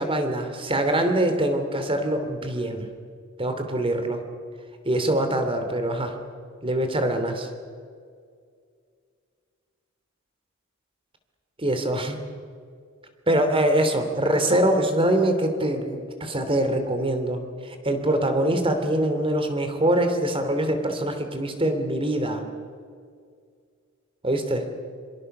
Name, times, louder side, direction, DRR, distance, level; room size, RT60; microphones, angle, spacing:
voice 1, 0.0-2.9 3.4-4.2 4.8-6.1 6.6-7.5 11.6-12.2 13.3-22.4 24.2-24.6, right 1 dB, 25° right, 7 dB, 3.0 m, -24 dB
26.0 x 24.0 x 6.8 m, 2.1 s
head